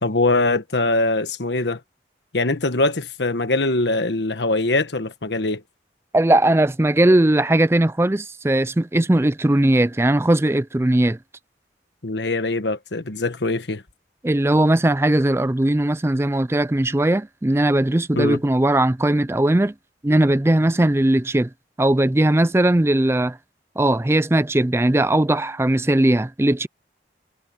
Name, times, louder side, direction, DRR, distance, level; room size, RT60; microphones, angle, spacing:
voice 1, 0.0-1.8 2.3-5.6 12.0-13.8 18.1-18.4, left 2 dB, 85° left, 1.4 m, -22 dB
voice 2, 6.1-11.2 14.2-19.7 20.0-21.5 21.8-23.4 23.8-26.7, right 1 dB, 15° right, 0.4 m, -19 dB
head